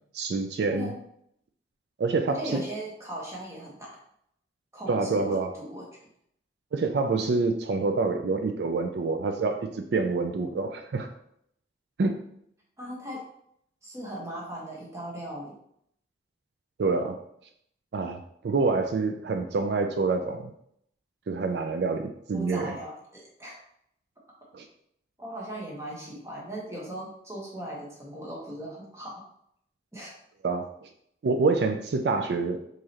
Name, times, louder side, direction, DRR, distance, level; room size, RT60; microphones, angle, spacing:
voice 1, 0.1-0.9 2.0-2.6 4.9-5.5 6.7-11.1 12.0-12.2 16.8-17.2 17.9-20.5 21.3-22.8 24.5-24.6 30.4-30.7 31.2-32.6, right 3 dB, 75° right, 6 dB, 0.4 m, -27 dB
voice 2, 0.7-1.0 2.3-4.0 4.7-5.8 12.8-13.2 13.8-15.6 22.3-23.5 25.2-29.2 29.9-30.2, right 1 dB, 15° right, -4 dB, 1.1 m, -38 dB
4.6 x 3.1 x 2.9 m, 0.72 s
head